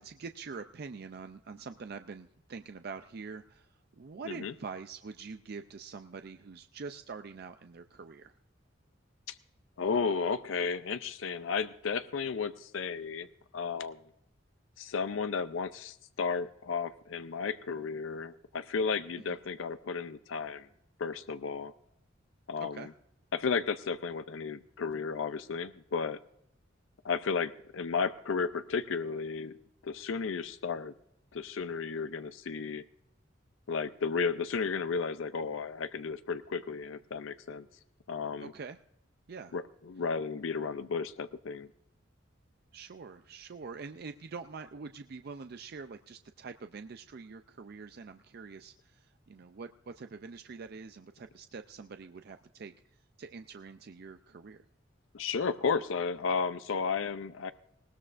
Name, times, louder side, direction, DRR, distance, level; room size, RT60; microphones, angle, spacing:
voice 1, 0.0-8.4 19.3-19.4 22.6-22.9 38.4-38.8 39.3-39.5 42.7-52.7 53.2-54.6, right 5 dB, 55° right, 8 dB, 0.4 m, -45 dB
voice 2, 9.8-13.3 13.5-14.0 14.8-20.7 21.0-21.7 22.5-22.9 23.3-26.2 27.0-29.5 29.8-30.9 31.3-32.8 33.7-37.7 38.1-38.5 39.5-41.7 55.1-57.5, left 5 dB, 85° left, 12 dB, 0.5 m, -33 dB
19.5 x 17.0 x 2.5 m, 0.76 s
head